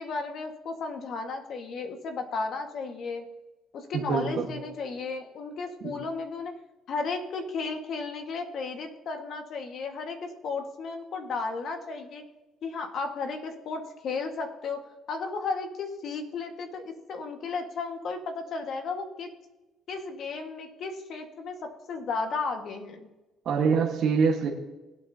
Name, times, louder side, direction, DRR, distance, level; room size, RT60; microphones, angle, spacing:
voice 1, 0.0-3.2 3.7-6.5 6.9-12.2 12.6-19.3 19.9-21.5 21.9-23.1, left 4 dB, 55° left, 5 dB, 1.7 m, -34 dB
voice 2, 3.9-4.5 5.8-5.9 23.4-24.5, right 5 dB, 60° right, -2 dB, 1.5 m, -25 dB
19.0 x 8.6 x 2.8 m, 1.1 s
cardioid pair, 120°, 0 cm